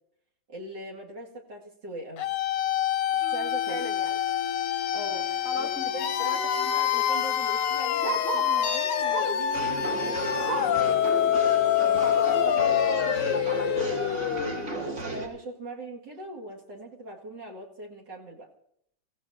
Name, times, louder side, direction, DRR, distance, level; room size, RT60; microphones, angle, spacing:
voice 1, 0.5-2.2 3.2-3.8 4.9-5.3 5.6-6.4 6.6-10.7 14.7-18.5, right 2 dB, 60° right, -1 dB, 2.8 m, -40 dB
sound 1, 2.2-15.0, left 10 dB, 65° left, 1.2 m, -26 dB
voice 2, 3.7-4.2 5.4-7.1 12.0-14.1, left 3 dB, 45° left, 5 dB, 0.8 m, -38 dB
Bark, 4.9-5.1 5.5-5.6 5.8-8.6 9.1-9.5 9.9-10.9 11.3-11.4 11.8-11.9 12.6-12.7, right 6 dB, 90° right, 2.1 m, -37 dB
sound 2, 9.5-15.3, right 3 dB, 40° right, 2.6 m, -33 dB
28.5 x 16.0 x 2.8 m, 0.71 s
omnidirectional pair, 2.2 m